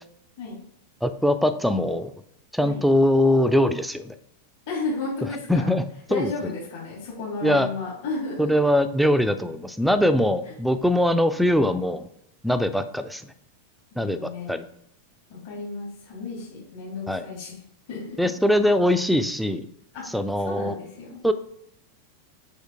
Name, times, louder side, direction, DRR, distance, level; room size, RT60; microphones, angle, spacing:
voice 1, 1.0-2.1 2.5-4.1 5.5-5.8 6.1-6.3 7.4-7.7 8.4-12.1 12.4-13.3 14.0-14.6 17.1-17.2 18.2-19.7 20.1-20.8 21.2-21.3, left 1 dB, ahead, 10 dB, 0.6 m, -22 dB
voice 2, 4.7-5.7 6.1-8.5 10.4-10.5 13.9-14.6 15.3-17.5 17.9-18.1 19.9-20.0 20.4-21.2, left 3 dB, 55° left, -6 dB, 2.9 m, -33 dB
6.5 x 5.0 x 4.9 m, 0.75 s
figure-of-eight pair, 90°, 0 cm